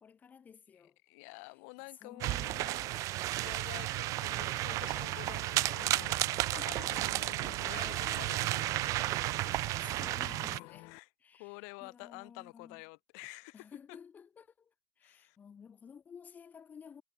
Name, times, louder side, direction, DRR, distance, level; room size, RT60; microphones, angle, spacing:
voice 1, 0.0-1.0 1.3-1.5 1.9-3.6 6.3-8.1 8.7-8.8 9.6-10.9 11.2-12.8 13.5-17.0, left 7 dB, 20° left, 7.2 m, -54 dB
voice 2, 1.0-9.7 10.5-11.1 11.4-13.7 15.0-15.4, left 37 dB, 75° left, 7.3 m, -50 dB
sound 1, 2.2-10.6, right 17 dB, 45° right, 0.5 m, -33 dB
sound 2, 4.3-11.0, left 25 dB, 60° left, 1.9 m, -52 dB
cardioid pair, 165°, 8 cm